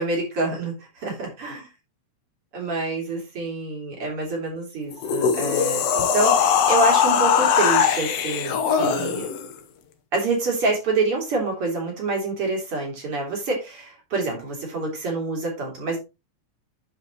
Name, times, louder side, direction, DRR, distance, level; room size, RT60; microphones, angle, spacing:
voice 1, 0.0-1.6 2.5-9.3 10.1-16.0, right 3 dB, 50° right, 0 dB, 3.8 m, -27 dB
sound 1, 4.9-9.5, left 7 dB, 65° left, 1.9 m, -21 dB
11.0 x 5.2 x 3.0 m, 0.25 s
omnidirectional pair, 3.3 m